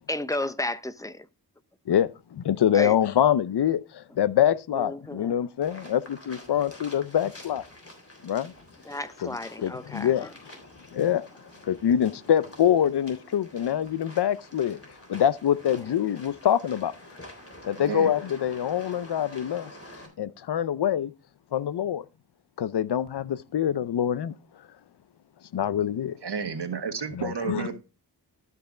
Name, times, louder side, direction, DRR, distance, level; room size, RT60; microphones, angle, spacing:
voice 1, 0.1-1.3 2.7-3.0 4.7-5.4 8.8-10.3 15.7-15.9 20.3-20.4, left 1 dB, 10° left, 0.6 m, -33 dB
voice 2, 1.9-7.6 8.2-8.5 9.2-9.3 9.6-10.3 10.9-11.2 11.6-14.8 15.1-16.9 17.6-19.7 20.2-21.1 21.5-22.0 22.6-24.3 25.5-26.2 27.1-27.8, left 10 dB, 70° left, 0.6 m, -25 dB
sound 1, 5.6-20.1, left 1 dB, 35° left, 3.4 m, -48 dB
voice 3, 17.7-18.1 26.2-27.8, right 6 dB, 70° right, 1.4 m, -31 dB
12.5 x 5.6 x 3.8 m
wide cardioid pair, 80°, 42 cm